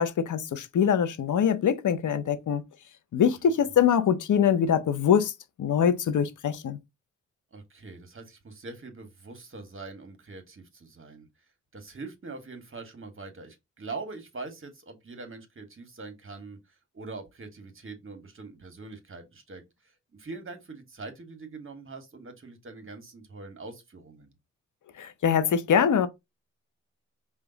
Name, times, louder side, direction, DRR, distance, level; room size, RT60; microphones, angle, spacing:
voice 1, 0.0-2.6 3.1-5.3 5.6-6.8 25.0-26.1, left 8 dB, 80° left, 0.7 m, -23 dB
voice 2, 7.5-11.3 11.7-16.6 16.9-24.3, right 3 dB, 45° right, 1.4 m, -43 dB
5.0 x 2.4 x 3.9 m
cardioid pair, 60°, 30 cm